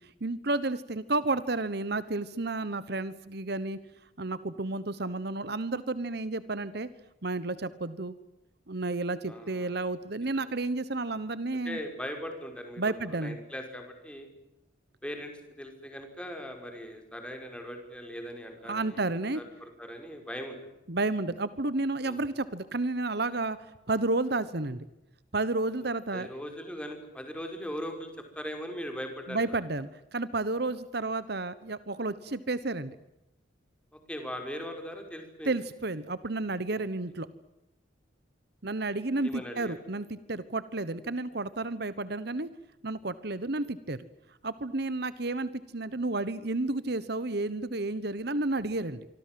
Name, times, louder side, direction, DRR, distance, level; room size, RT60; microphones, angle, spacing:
voice 1, 0.2-3.8 4.2-6.9 7.2-8.1 8.7-11.8 12.8-13.4 18.7-19.4 20.9-24.9 25.3-26.3 29.3-33.0 35.4-37.3 38.6-42.5 42.8-44.0 44.4-49.1, right 2 dB, 55° right, 15 dB, 1.2 m, -31 dB
voice 2, 9.3-9.7 10.3-10.5 11.6-12.9 13.2-14.3 15.0-15.3 15.6-19.0 19.3-20.6 22.0-22.2 26.1-28.1 28.4-29.4 34.1-35.6 36.7-36.8 39.2-39.7, equal, 5° left, 4 dB, 5.5 m, -39 dB
26.0 x 25.5 x 7.8 m, 0.92 s
head